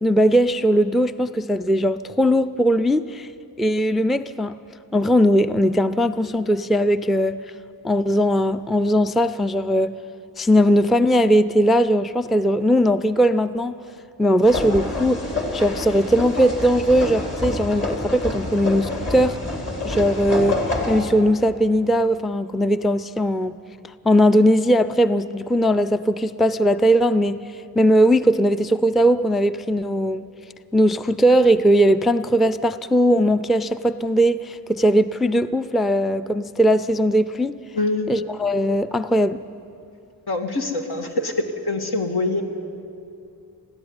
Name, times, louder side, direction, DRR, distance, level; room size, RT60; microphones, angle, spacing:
voice 1, 0.0-3.3 3.6-4.5 4.9-7.4 7.8-10.0 10.4-13.8 14.2-15.3 15.5-19.4 19.8-20.6 20.9-23.6 24.0-27.4 27.8-30.3 30.7-37.6 38.1-39.4, equal, ahead, 0.4 m, -19 dB
sound 1, 14.4-21.0, left 2 dB, 40° left, 3.9 m, -27 dB
voice 2, 37.8-38.1 40.3-41.3 41.6-42.4, left 2 dB, 70° left, 2.1 m, -24 dB
21.0 x 14.0 x 9.8 m
wide cardioid pair, 80°, 39 cm